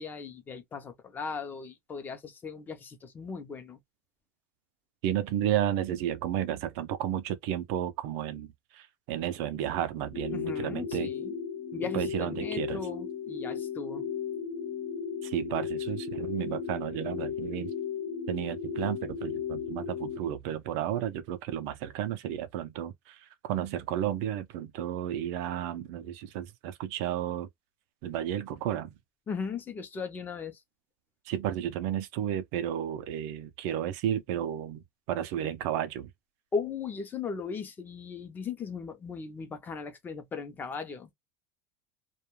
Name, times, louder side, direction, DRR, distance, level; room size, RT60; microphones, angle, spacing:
voice 1, 0.0-3.8 10.3-11.3 11.7-14.1 29.3-30.6 36.5-41.1, left 5 dB, 20° left, 0.6 m, -37 dB
voice 2, 5.0-11.1 11.9-12.8 15.2-17.7 18.3-27.5 28.0-28.9 31.3-36.1, right 11 dB, 60° right, 0.5 m, -32 dB
sound 1, 10.1-20.2, left 7 dB, 65° left, 0.9 m, -35 dB
2.3 x 2.2 x 3.1 m
supercardioid pair, 140°, 9 cm